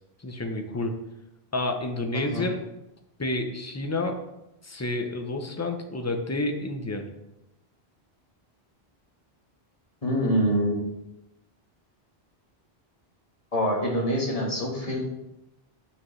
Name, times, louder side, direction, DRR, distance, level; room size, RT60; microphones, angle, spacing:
voice 1, 0.2-1.0 1.5-2.6 3.2-4.2 4.6-7.1, left 2 dB, 20° left, 4 dB, 0.6 m, -29 dB
voice 2, 10.0-10.8 13.5-15.0, equal, 35° left, -2 dB, 1.5 m, -25 dB
8.7 x 4.9 x 3.2 m, 0.90 s
omnidirectional pair, 1.1 m